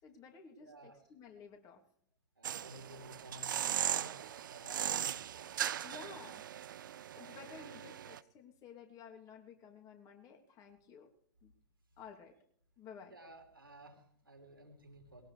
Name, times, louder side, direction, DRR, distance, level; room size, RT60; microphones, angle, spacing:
voice 1, 0.0-1.8 5.8-6.5 7.2-11.1 11.4-11.5 12.0-12.3 12.8-13.1, left 6 dB, 35° left, 1 dB, 3.0 m, -53 dB
voice 2, 0.6-1.0 2.3-5.2 12.9-15.3, right 1 dB, 90° right, 4 dB, 3.3 m, -54 dB
sound 1, 2.4-8.2, right 10 dB, 65° right, 0.6 m, -38 dB
20.5 x 17.5 x 3.4 m, 0.67 s
figure-of-eight pair, 100°, 11 cm